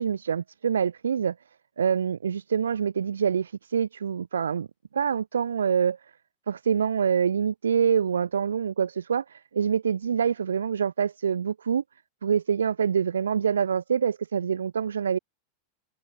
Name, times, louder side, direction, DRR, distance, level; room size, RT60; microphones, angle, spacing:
voice 1, 0.0-1.3 1.8-4.7 4.9-6.0 6.5-11.8 12.2-15.2, right 7 dB, 70° right, 3.8 m, -25 dB
figure-of-eight pair, 90°, 0 cm